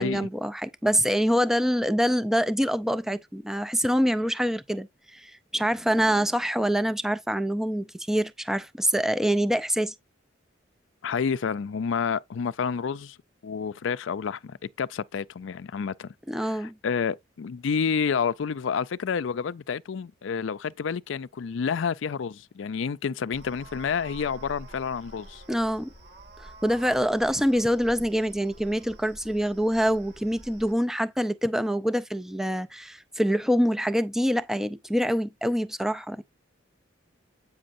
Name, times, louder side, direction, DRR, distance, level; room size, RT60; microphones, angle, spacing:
voice 1, 0.0-9.9 16.3-16.7 25.5-25.9 26.4-36.2, equal, ahead, 0.4 m, -25 dB
voice 2, 11.0-13.2 13.4-16.1 16.4-25.4, left 6 dB, 75° left, 0.4 m, -29 dB
sound 1, 23.3-30.7, right 1 dB, 50° right, 2.6 m, -47 dB
8.7 x 6.0 x 2.6 m
head